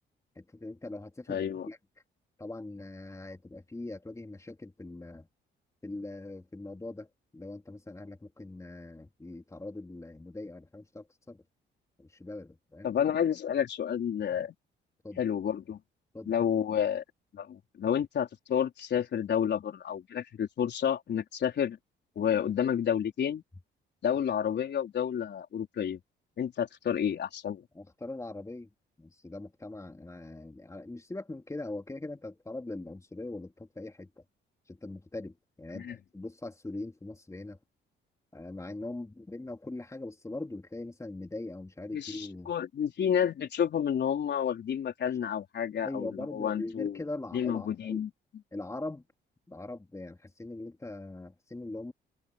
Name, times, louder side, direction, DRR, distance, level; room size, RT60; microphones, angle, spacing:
voice 1, 0.3-1.8 2.4-5.3 5.8-7.1 7.3-11.4 12.0-12.9 15.0-15.2 16.1-16.3 27.7-28.7 29.0-34.2 34.7-37.6 38.3-42.5 45.8-48.0 48.5-49.0 49.5-51.9, left 2 dB, 15° left, 3.5 m, -41 dB
voice 2, 1.3-1.7 12.8-14.5 15.2-15.8 16.3-17.0 17.3-21.8 22.2-23.4 24.0-26.0 26.4-27.6 35.7-36.0 41.9-47.0 47.3-48.1, left 8 dB, 60° left, 4.4 m, -30 dB
cardioid pair, 90°, 20 cm